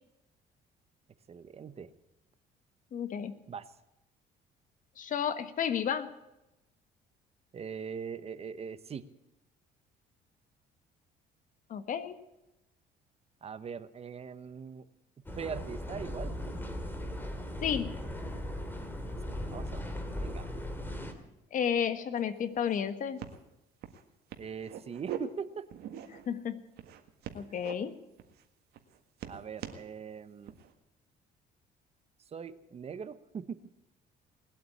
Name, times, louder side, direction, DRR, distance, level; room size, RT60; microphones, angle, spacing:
voice 1, 1.3-1.9 3.5-3.7 7.5-9.0 13.4-14.9 15.3-16.6 19.5-19.9 20.1-20.5 24.4-25.7 29.3-30.5 32.3-33.6, right 6 dB, 35° right, 14 dB, 0.9 m, -41 dB
voice 2, 2.9-3.4 5.0-6.1 11.7-12.2 17.6-18.0 21.5-23.2 26.3-26.7 27.3-28.0, left 8 dB, 50° left, 12 dB, 1.4 m, -32 dB
sound 1, 15.3-21.1, left 1 dB, 10° left, 2.4 m, -38 dB
sound 2, 22.2-22.3 22.5-22.9 23.2-23.4 23.8-24.0 24.3-25.2 25.7-26.3 26.8-27.7 28.2-28.4 28.7-29.8 30.4-30.7, right 11 dB, 75° right, 1.8 m, -42 dB
20.0 x 8.5 x 8.5 m, 0.95 s
cardioid pair, 110°, 17 cm